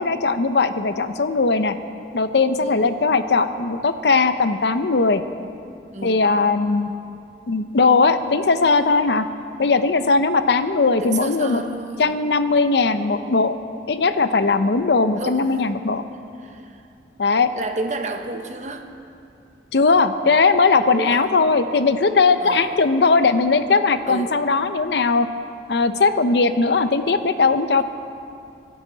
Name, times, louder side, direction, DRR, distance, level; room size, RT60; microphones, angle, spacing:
voice 1, 0.0-1.8 2.1-5.2 6.0-6.9 7.5-9.2 9.6-11.6 12.0-13.6 13.9-16.0 17.2-17.5 19.7-25.3 25.7-27.8, left 4 dB, 70° left, 10 dB, 0.6 m, -19 dB
voice 2, 5.9-6.3 11.0-12.2 15.2-15.7 16.4-16.8 17.5-18.9 20.9-21.3 22.4-22.8 24.1-24.4 27.8-27.9, right 2 dB, 40° right, 5 dB, 1.0 m, -31 dB
24.5 x 11.0 x 4.0 m, 2.6 s
head